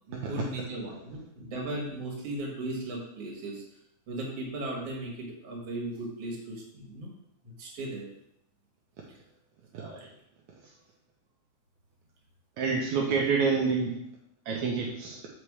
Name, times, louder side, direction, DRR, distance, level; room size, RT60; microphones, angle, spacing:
voice 1, 0.1-3.6 4.1-7.1 7.6-8.1, right 1 dB, 55° right, -2 dB, 2.6 m, -36 dB
voice 2, 9.7-10.1 12.6-14.0 14.5-15.2, right 5 dB, 75° right, -2 dB, 2.1 m, -28 dB
7.4 x 4.3 x 4.9 m, 0.80 s
omnidirectional pair, 3.6 m